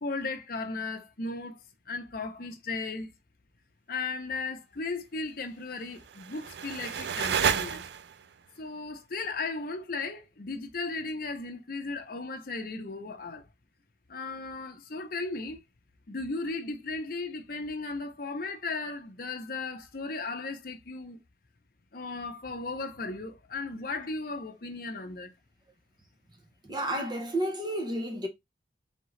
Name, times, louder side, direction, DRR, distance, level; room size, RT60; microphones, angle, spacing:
voice 1, 0.0-3.1 3.9-7.8 8.6-13.5 14.1-15.6 16.1-21.2 21.9-25.3, left 3 dB, 50° left, 0.7 m, -36 dB
sound 1, 5.9-8.3, right 8 dB, 65° right, 0.3 m, -31 dB
voice 2, 26.6-28.3, right 1 dB, 25° right, 0.8 m, -31 dB
3.7 x 3.6 x 3.1 m
head